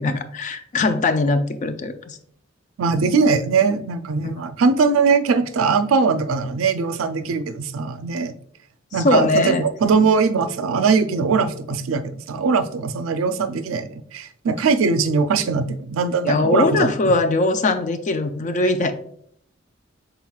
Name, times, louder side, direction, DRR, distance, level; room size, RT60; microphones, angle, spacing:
voice 1, 0.0-2.2 4.2-4.3 9.0-9.6 16.2-18.9, left 2 dB, 40° left, 9 dB, 0.4 m, -20 dB
voice 2, 2.8-8.3 8.9-17.1, right 4 dB, 85° right, 9 dB, 0.4 m, -21 dB
5.8 x 3.9 x 2.3 m, 0.66 s
head